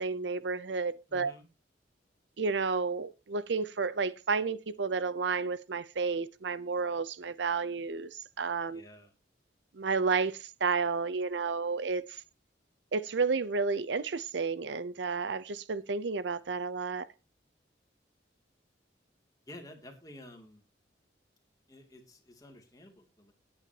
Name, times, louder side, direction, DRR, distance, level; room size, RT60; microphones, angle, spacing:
voice 1, 0.0-1.3 2.4-8.8 9.7-12.2 12.9-17.0, right 4 dB, 75° right, 0.6 m, -31 dB
voice 2, 1.1-1.5 8.7-9.1 19.5-20.6 21.7-23.3, left 1 dB, 20° left, 2.5 m, -51 dB
17.0 x 8.8 x 2.8 m
head